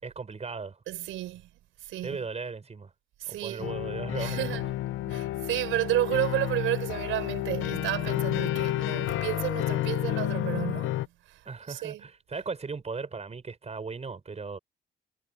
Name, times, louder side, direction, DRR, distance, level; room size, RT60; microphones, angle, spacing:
voice 1, 0.0-0.8 2.0-2.9 3.3-4.5 5.1-5.2 11.5-14.6, right 4 dB, 35° right, 5.8 m, -37 dB
voice 2, 0.9-1.5 1.9-2.2 3.2-3.7 4.2-4.6 5.1-11.4 11.7-12.0, right 14 dB, 90° right, 5.4 m, -31 dB
sound 1, 3.6-11.1, left 14 dB, 85° left, 0.8 m, -30 dB
cardioid pair, 90°, 20 cm